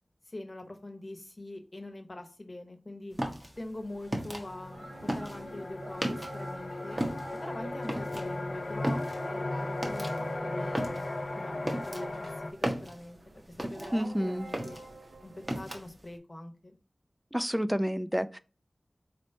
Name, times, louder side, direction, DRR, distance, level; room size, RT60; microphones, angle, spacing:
voice 1, 0.3-3.2 3.6-7.0 7.4-10.1 10.4-11.1 11.3-13.2 13.6-14.8 15.2-16.8, left 2 dB, 35° left, 0.8 m, -43 dB
sound 1, 3.1-6.6 6.9-14.1 14.4-16.1, right 1 dB, 25° right, 1.0 m, -36 dB
sound 2, 3.6-3.7 4.1-12.5, left 2 dB, 60° left, 0.5 m, -37 dB
sound 3, 4.7-15.8, right 2 dB, 85° right, 0.5 m, -47 dB
voice 2, 13.9-14.5 17.3-18.4, equal, 5° right, 0.3 m, -29 dB
4.1 x 3.2 x 2.7 m
wide cardioid pair, 65°, 0 cm